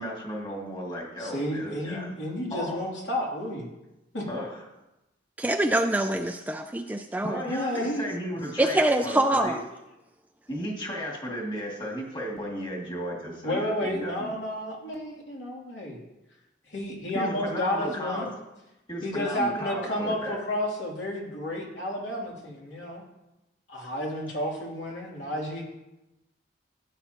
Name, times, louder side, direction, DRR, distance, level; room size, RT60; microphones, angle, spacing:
voice 1, 0.0-2.1 2.5-2.8 4.3-4.6 7.2-9.6 10.5-14.4 17.1-18.3 18.9-20.4, equal, 25° left, -3 dB, 2.3 m, -34 dB
voice 2, 1.2-3.7 4.1-4.3 7.5-8.1 13.4-16.0 16.7-18.3 19.0-23.0 23.7-25.6, left 1 dB, 70° left, -3 dB, 3.0 m, -31 dB
voice 3, 5.4-7.4 8.6-9.6, right 1 dB, 10° right, 6 dB, 0.4 m, -25 dB
16.0 x 9.2 x 2.9 m, 0.96 s
head